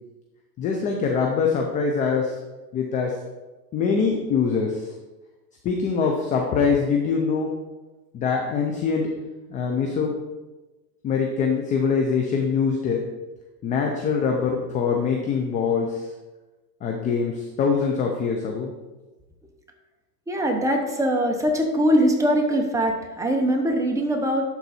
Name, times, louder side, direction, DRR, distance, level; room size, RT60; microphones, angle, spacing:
voice 1, 0.6-2.4 2.7-3.2 3.7-4.9 5.6-7.5 8.1-9.1 9.5-10.2 11.0-13.0 13.6-16.1 16.8-18.7, left 5 dB, 15° left, 2 dB, 0.4 m, -23 dB
voice 2, 20.3-24.4, equal, 5° right, 2 dB, 0.9 m, -22 dB
11.5 x 4.0 x 4.2 m, 1.2 s
supercardioid pair, 130°, 49 cm